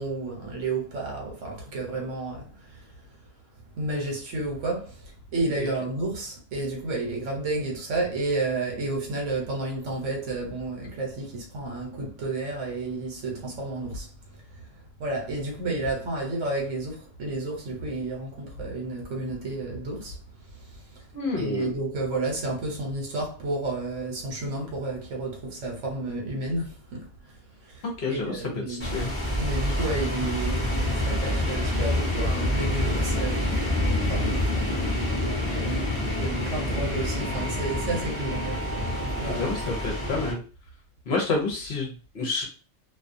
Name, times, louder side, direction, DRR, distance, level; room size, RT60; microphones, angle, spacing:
voice 1, 0.0-2.9 3.7-14.1 14.5-14.6 15.0-20.2 21.4-27.1 27.6-29.1 29.4-33.5 33.7-35.0 35.5-38.7 39.2-39.4, right 2 dB, 70° right, 1.1 m, -31 dB
voice 2, 21.1-21.7 27.8-29.1 39.3-40.4 41.1-42.4, left 3 dB, 60° left, 0.8 m, -29 dB
sound 1, 28.8-40.3, left 1 dB, 10° left, 0.6 m, -27 dB
2.4 x 2.2 x 2.6 m
omnidirectional pair, 1.4 m